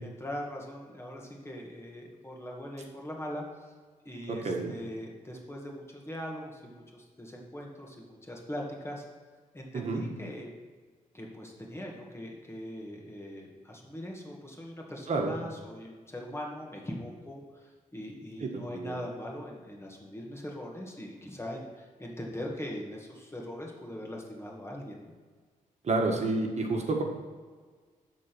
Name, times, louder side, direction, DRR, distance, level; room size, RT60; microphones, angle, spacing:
voice 1, 0.0-3.4 4.0-9.0 9.5-10.5 11.1-25.1, equal, 15° left, -1 dB, 2.1 m, -41 dB
voice 2, 4.3-4.7 9.7-10.0 15.1-15.3 18.4-19.0 25.8-27.0, right 3 dB, 50° right, 1 dB, 1.5 m, -29 dB
12.5 x 4.1 x 6.2 m, 1.5 s
cardioid pair, 85°, 15 cm